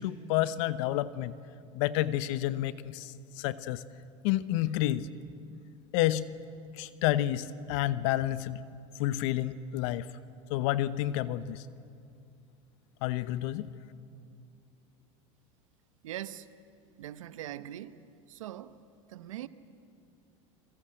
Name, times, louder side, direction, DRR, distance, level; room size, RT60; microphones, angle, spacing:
voice 1, 0.0-1.3 1.7-3.8 4.2-5.1 5.9-6.4 6.8-8.6 9.0-10.1 10.5-11.6 13.0-13.7, left 14 dB, 70° left, 1.0 m, -30 dB
voice 2, 16.0-16.5 17.0-18.0 18.3-18.8 19.1-19.5, right 12 dB, 85° right, 1.1 m, -41 dB
28.5 x 22.0 x 7.8 m
hypercardioid pair, 90°, 16 cm